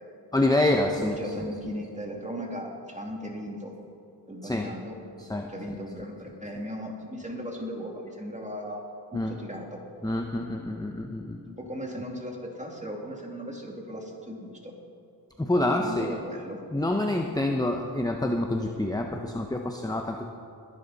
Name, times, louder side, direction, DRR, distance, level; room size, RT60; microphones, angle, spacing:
voice 1, 0.3-1.4 4.4-4.7 5.2-5.8 9.1-9.3 10.0-11.4 15.4-16.1 16.7-20.3, left 1 dB, 10° left, 3 dB, 0.8 m, -27 dB
voice 2, 1.0-3.7 4.3-8.8 9.1-9.8 11.5-14.8 15.8-16.6, equal, 15° right, 0 dB, 2.5 m, -37 dB
20.5 x 11.0 x 4.2 m, 2.6 s
wide cardioid pair, 70°, 42 cm